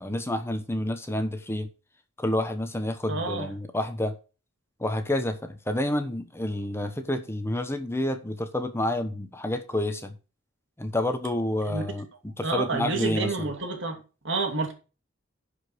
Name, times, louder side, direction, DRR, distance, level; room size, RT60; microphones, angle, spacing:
voice 1, 0.0-1.7 2.2-4.2 4.8-10.1 10.8-13.5, left 1 dB, 15° left, 1.1 m, -29 dB
voice 2, 3.1-3.5 11.7-11.8 12.4-14.0 14.2-14.7, right 3 dB, 65° right, 2.9 m, -29 dB
11.0 x 5.2 x 6.3 m
head